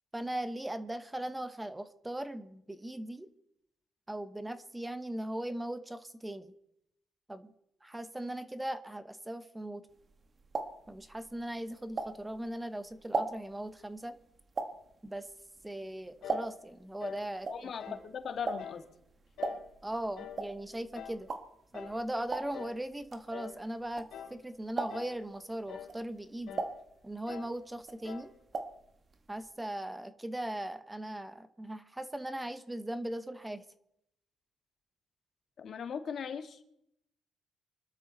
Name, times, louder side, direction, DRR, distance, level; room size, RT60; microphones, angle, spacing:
voice 1, 0.1-3.3 4.1-6.5 7.3-7.5 7.8-9.9 10.9-14.2 15.0-15.3 15.6-17.7 19.8-21.3 21.7-26.6 27.0-28.3 29.3-33.6, right 1 dB, 10° right, 11 dB, 1.1 m, -39 dB
sound 1, 10.0-12.5 12.9-16.8 17.1-24.4 24.7-25.3 25.8-27.5 27.8-28.9 29.1-29.2 29.5-29.6, right 3 dB, 40° right, 1.7 m, -38 dB
sound 2, 16.2-16.5 17.0-17.3 17.8-18.1 18.6-18.9 19.4-19.7 20.1-20.5 20.9-21.2 21.7-22.0 22.5-22.8 23.3-23.6 24.1-24.4 24.9-25.2 25.7-26.0 26.5-26.8 27.3-27.6 28.0-28.4, left 9 dB, 80° left, 3.1 m, -45 dB
voice 2, 17.5-18.8 35.6-36.6, left 7 dB, 55° left, 7 dB, 1.8 m, -39 dB
25.0 x 12.5 x 4.1 m, 0.77 s
cardioid pair, 90°, 0 cm